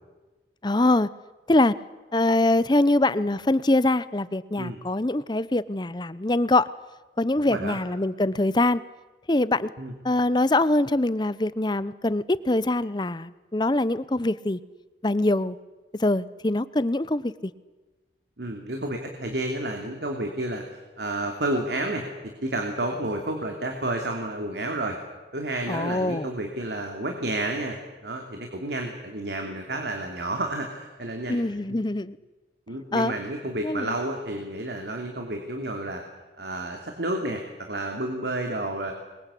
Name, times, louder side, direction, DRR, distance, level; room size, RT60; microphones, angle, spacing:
voice 1, 0.6-1.1 1.5-1.7 2.1-6.7 7.2-8.8 9.3-9.7 10.0-14.6 15.0-15.6 16.0-17.5 25.7-26.3 31.3-32.2 32.9-33.1 33.6-33.9, left 2 dB, 25° left, 17 dB, 0.7 m, -23 dB
voice 2, 7.4-7.8 9.8-9.9 18.4-22.0 22.4-25.0 25.3-27.8 28.0-31.4 32.7-36.0 36.4-38.9, right 1 dB, 70° right, 3 dB, 2.9 m, -30 dB
26.0 x 22.0 x 8.4 m, 1.2 s
head